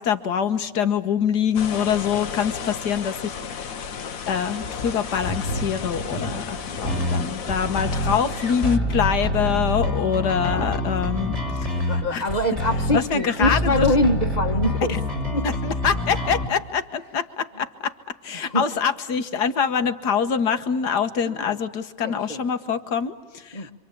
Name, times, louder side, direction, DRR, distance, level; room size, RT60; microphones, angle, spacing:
voice 1, 0.0-3.8 4.3-11.3 11.6-12.2 12.9-13.9 14.9-15.0 15.4-17.9 18.2-23.7, left 7 dB, 70° left, 9 dB, 1.8 m, -25 dB
sound 1, 1.5-8.8, left 6 dB, 55° left, 1.4 m, -34 dB
sound 2, 3.1-3.2 3.8-3.9 4.5-7.9 8.2-8.7 9.4-12.9 13.2-13.5, equal, 60° right, 6.5 m, -35 dB
sound 3, 6.9-16.5, left 1 dB, 40° right, 5.8 m, -26 dB
voice 2, 11.9-15.0 15.3-15.5 18.3-18.6 21.2-21.6 22.0-22.4 23.5-23.7, left 1 dB, 25° left, 5 dB, 1.6 m, -24 dB
26.5 x 26.0 x 8.5 m, 1.3 s
omnidirectional pair, 1.8 m